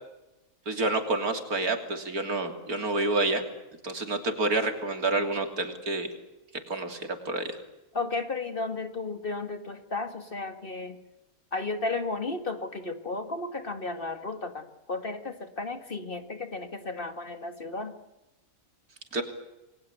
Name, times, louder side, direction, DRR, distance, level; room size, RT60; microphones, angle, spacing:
voice 1, 0.7-3.4 3.8-6.1 6.7-7.6 19.1-19.2, right 2 dB, 80° right, 6 dB, 3.6 m, -28 dB
voice 2, 7.9-11.0 11.5-17.9, left 3 dB, 35° left, 8 dB, 2.1 m, -34 dB
29.0 x 21.5 x 8.3 m, 0.98 s
omnidirectional pair, 1.6 m